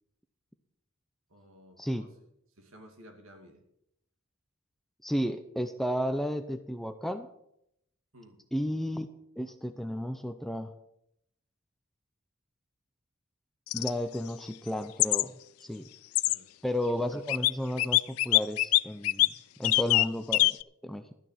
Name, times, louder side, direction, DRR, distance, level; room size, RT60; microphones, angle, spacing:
voice 1, 1.3-2.1 2.6-3.6 8.1-8.4 16.2-16.5 19.7-19.9, equal, 70° right, 4 dB, 2.6 m, -54 dB
voice 2, 5.0-7.3 8.5-9.1 9.4-10.7 13.7-15.3 15.6-15.9 16.6-19.3 19.6-20.6 20.8-21.0, equal, ahead, 8 dB, 0.6 m, -33 dB
sound 1, 13.7-13.9 15.0-15.2 16.1-16.4 17.3-17.5 17.8-19.3 19.6-20.1 20.3-20.6, left 19 dB, 85° left, 0.4 m, -23 dB
12.5 x 9.6 x 5.8 m, 0.76 s
head